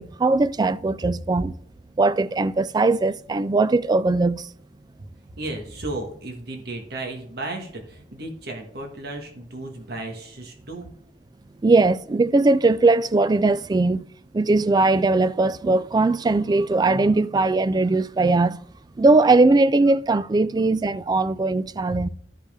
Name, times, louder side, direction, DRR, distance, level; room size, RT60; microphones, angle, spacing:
voice 1, 0.0-1.5 2.0-4.5 11.6-14.0 14.3-18.6 19.0-22.1, right 3 dB, 25° right, 0.3 m, -20 dB
voice 2, 5.4-10.9 21.9-22.1, right 2 dB, 65° right, 1.6 m, -34 dB
13.0 x 5.3 x 3.6 m
head